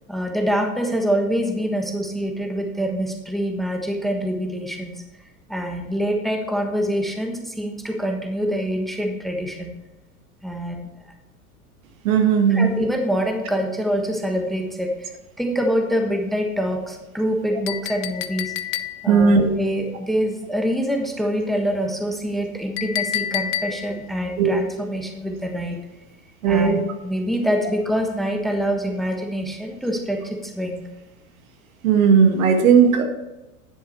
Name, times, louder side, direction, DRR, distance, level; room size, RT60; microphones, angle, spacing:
voice 1, 0.1-5.0 5.5-9.7 10.4-10.9 12.5-15.1 15.4-25.8 26.5-30.8, equal, ahead, 3 dB, 1.3 m, -25 dB
voice 2, 12.0-12.7 19.1-19.5 24.4-24.6 26.4-26.8 31.8-33.0, right 6 dB, 65° right, 5 dB, 1.8 m, -16 dB
Chink clink, 17.7-19.2 22.8-24.0, left 11 dB, 55° left, 0.7 m, -28 dB
10.0 x 7.5 x 4.6 m, 1.0 s
hypercardioid pair, 100°, 43 cm